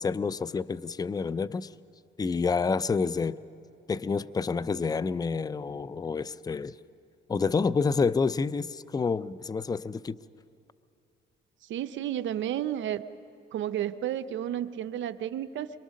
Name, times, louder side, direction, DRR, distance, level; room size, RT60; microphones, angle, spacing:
voice 1, 0.0-1.7 2.2-3.4 3.9-6.8 7.3-10.2, left 5 dB, 20° left, 0.4 m, -28 dB
voice 2, 11.7-13.0 13.5-15.8, right 11 dB, 75° right, 0.6 m, -32 dB
23.5 x 22.5 x 6.4 m
cardioid pair, 90°, 20 cm